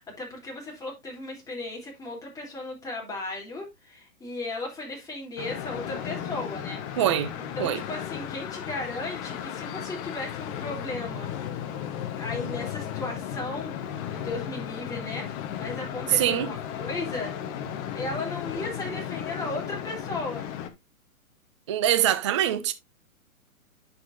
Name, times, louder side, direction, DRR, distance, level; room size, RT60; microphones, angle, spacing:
voice 1, 0.0-6.8 7.6-11.3 12.1-13.7 14.1-17.3 17.7-20.5, left 2 dB, 10° left, 3.1 m, -36 dB
sound 1, 5.4-20.7, left 9 dB, 25° left, 0.8 m, -35 dB
voice 2, 7.0-7.3 7.6-7.8 16.1-16.5 21.7-22.7, right 11 dB, 25° right, 0.4 m, -23 dB
9.7 x 6.5 x 2.6 m
hypercardioid pair, 140°, 42 cm